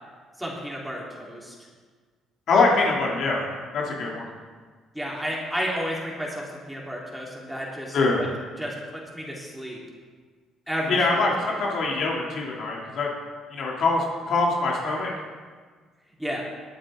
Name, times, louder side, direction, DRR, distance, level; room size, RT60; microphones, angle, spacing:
voice 1, 0.4-1.5 4.9-8.3 8.6-9.8 10.7-11.6 16.2-16.4, equal, 5° right, -4 dB, 3.7 m, -32 dB
voice 2, 2.5-3.5 3.7-4.3 7.9-8.2 10.9-13.1 13.5-15.1, left 3 dB, 60° left, -2 dB, 2.9 m, -23 dB
21.0 x 8.7 x 3.8 m, 1.5 s
cardioid pair, 85°, 0 cm